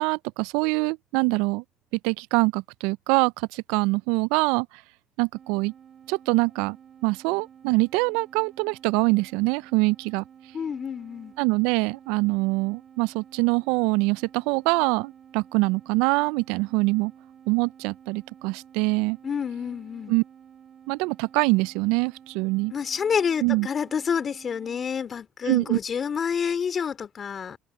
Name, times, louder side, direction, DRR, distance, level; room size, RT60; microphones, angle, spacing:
voice 1, 0.0-1.6 2.0-4.7 5.2-5.7 6.1-6.8 7.0-10.2 11.4-17.1 17.5-19.2 20.1-20.2 20.9-22.7 23.4-23.7 25.5-25.8, right 26 dB, 75° right, 0.4 m, -24 dB
sound 1, 5.3-24.9, right 8 dB, 45° right, 3.3 m, -51 dB
voice 2, 10.5-11.3 19.2-20.1 22.7-27.6, left 7 dB, 45° left, 3.3 m, -28 dB
hypercardioid pair, 60°, 0 cm